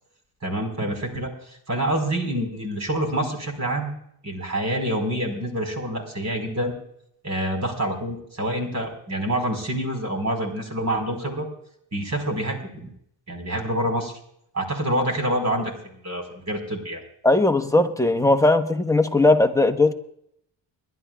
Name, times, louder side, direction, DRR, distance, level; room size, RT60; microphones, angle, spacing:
voice 1, 0.4-3.9 4.2-6.7 7.2-11.5 11.9-12.9 13.3-14.1 14.5-17.0, right 1 dB, 35° right, 3 dB, 4.6 m, -27 dB
voice 2, 17.2-19.9, left 2 dB, 5° left, 7 dB, 1.1 m, -18 dB
29.5 x 11.5 x 2.4 m, 0.72 s
cardioid pair, 90°, 46 cm